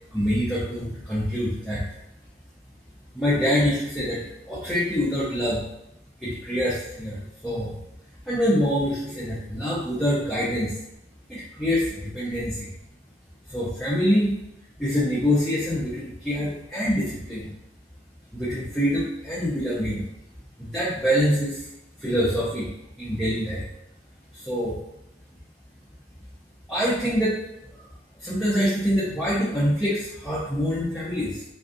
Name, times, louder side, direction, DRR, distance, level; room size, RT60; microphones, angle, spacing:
voice 1, 0.1-1.8 3.1-5.6 6.2-7.7 8.2-10.7 11.3-12.7 13.5-14.3 14.8-17.5 18.3-20.1 20.6-21.7 22.0-22.7 23.0-23.6 24.3-24.8 26.7-27.4 27.7-27.8 28.2-31.4, equal, ahead, -10 dB, 0.5 m, -25 dB
2.5 x 2.3 x 2.4 m, 0.84 s
head